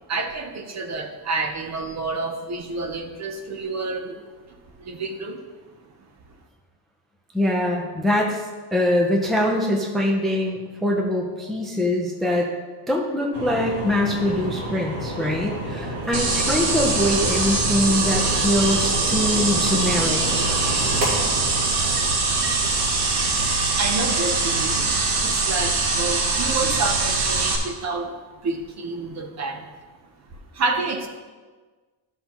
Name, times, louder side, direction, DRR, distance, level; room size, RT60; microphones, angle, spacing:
voice 1, 0.0-4.2 4.8-5.4 23.8-24.9 25.2-29.7 30.5-31.1, right 3 dB, 35° right, 4 dB, 0.7 m, -29 dB
voice 2, 7.3-8.4 8.7-12.5 12.9-20.2, left 1 dB, ahead, 0 dB, 0.5 m, -23 dB
sound 1, 13.3-24.5, right 1 dB, 55° right, 2.3 m, -31 dB
sound 2, 16.1-27.6, right 3 dB, 75° right, 1.6 m, -22 dB
12.0 x 5.7 x 3.0 m, 1.4 s
cardioid pair, 160°, 48 cm